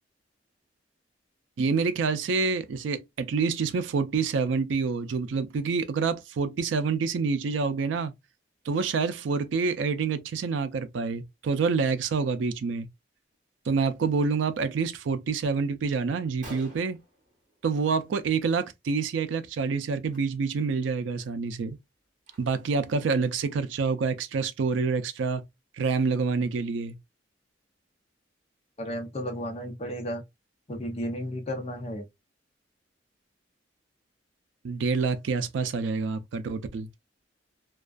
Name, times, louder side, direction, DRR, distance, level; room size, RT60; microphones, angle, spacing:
voice 1, 1.6-8.1 8.7-12.9 13.7-17.0 17.6-21.8 22.4-25.4 25.8-27.0 34.6-36.9, right 5 dB, 85° right, 0.4 m, -27 dB
Gunshot gunfire, 16.4-18.0 18.4-18.7 19.0-19.2 20.0-20.2 20.7-20.8 21.2-22.8, right 1 dB, 45° right, 1.0 m, -50 dB
voice 2, 28.8-30.2 30.7-32.1, equal, 35° left, 0.6 m, -33 dB
2.3 x 2.3 x 2.3 m
head